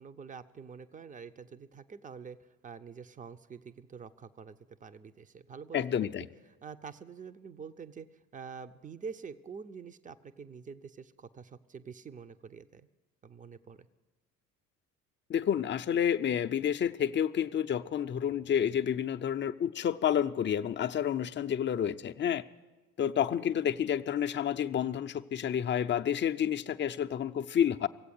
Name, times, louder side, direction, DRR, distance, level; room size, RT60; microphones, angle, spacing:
voice 1, 0.0-6.1 6.6-8.1 8.3-12.9 13.2-13.9 23.0-23.1, right 6 dB, 20° right, 13 dB, 0.6 m, -46 dB
voice 2, 5.7-6.3 15.3-22.4 23.0-27.9, left 9 dB, 30° left, 8 dB, 0.5 m, -29 dB
16.5 x 8.3 x 9.5 m, 1.2 s
hypercardioid pair, 60°, 42 cm